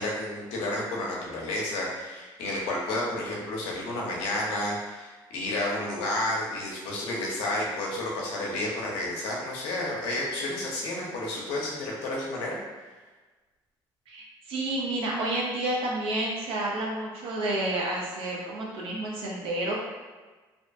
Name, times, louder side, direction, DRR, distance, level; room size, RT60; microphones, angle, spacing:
voice 1, 0.0-12.6, left 1 dB, 85° left, -3 dB, 0.6 m, -31 dB
voice 2, 14.1-19.7, right 1 dB, 70° right, -3 dB, 0.7 m, -30 dB
2.6 x 2.2 x 2.5 m, 1.3 s
supercardioid pair, 85°, 9 cm